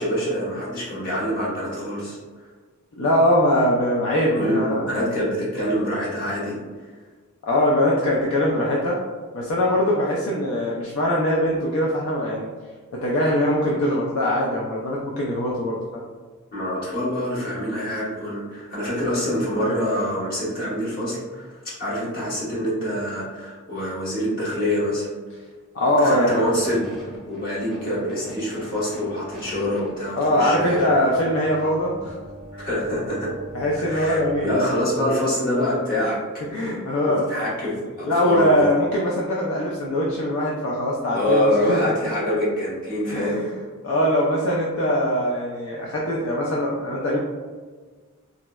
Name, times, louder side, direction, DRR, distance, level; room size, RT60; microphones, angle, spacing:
voice 1, 0.0-2.2 4.3-6.6 16.5-21.5 21.8-25.1 26.0-30.8 32.5-33.3 33.8-36.2 36.5-36.6 37.0-38.7 41.1-43.4, equal, 40° left, -9 dB, 1.1 m, -25 dB
voice 2, 3.0-5.1 7.4-9.0 9.3-12.5 12.9-16.0 25.7-26.4 30.2-32.1 33.5-34.7 36.5-37.3 38.0-41.9 43.1-43.5 43.8-47.2, equal, 60° left, -3 dB, 0.4 m, -22 dB
sound 1, 26.1-34.5, equal, ahead, 0.6 m, -41 dB
3.6 x 2.0 x 2.2 m, 1.5 s
head